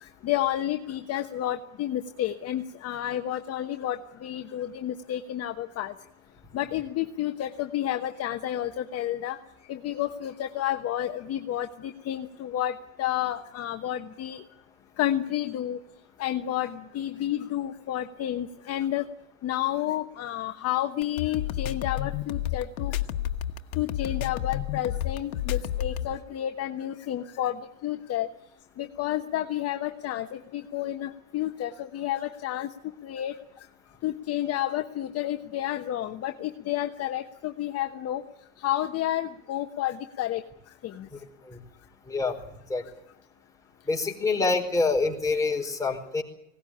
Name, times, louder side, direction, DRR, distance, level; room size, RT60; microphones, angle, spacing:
voice 1, 0.0-5.9 6.5-9.4 9.7-14.4 15.0-15.8 16.2-19.1 19.4-23.0 23.8-27.6 27.8-28.3 28.8-32.7 33.0-33.4 34.0-38.2 38.6-40.4 40.8-41.1, left 12 dB, 35° left, 7 dB, 1.1 m, -30 dB
sound 1, 21.0-26.1, left 13 dB, 75° left, 1.4 m, -30 dB
voice 2, 42.1-42.4 42.7-42.8 43.9-46.2, left 3 dB, 10° left, 1 dB, 4.6 m, -26 dB
20.0 x 18.0 x 10.0 m, 0.84 s
hypercardioid pair, 100°, 41 cm